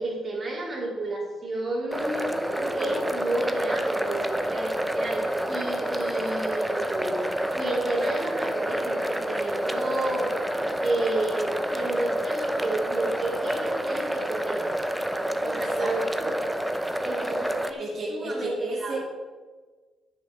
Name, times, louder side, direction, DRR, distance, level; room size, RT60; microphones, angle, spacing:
voice 1, 0.0-2.3 2.7-7.2 7.5-10.5 10.7-14.7 15.4-16.4 17.0-17.8 18.1-19.0, right 2 dB, 35° right, -3 dB, 3.4 m, -31 dB
sound 1, 1.9-17.7, right 1 dB, 5° right, 0.8 m, -28 dB
voice 2, 2.3-3.1 15.4-16.4 17.8-19.0, right 2 dB, 55° right, -6 dB, 2.7 m, -33 dB
9.1 x 6.4 x 6.2 m, 1.4 s
cardioid pair, 90°, 0 cm